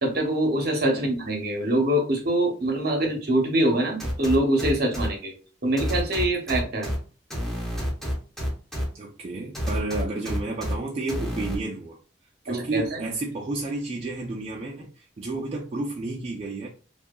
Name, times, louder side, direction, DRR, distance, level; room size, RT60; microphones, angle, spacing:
voice 1, 0.0-5.3 5.6-6.9 12.5-13.1, right 1 dB, 60° right, 1 dB, 0.8 m, -24 dB
sound 1, 4.0-5.1 5.8-7.0 7.3-8.8 9.5-10.7 11.1-11.6, equal, ahead, 0.6 m, -28 dB
voice 2, 8.9-12.0 12.4-16.7, right 2 dB, 35° right, -3 dB, 0.4 m, -31 dB
2.7 x 2.2 x 2.2 m, 0.38 s
head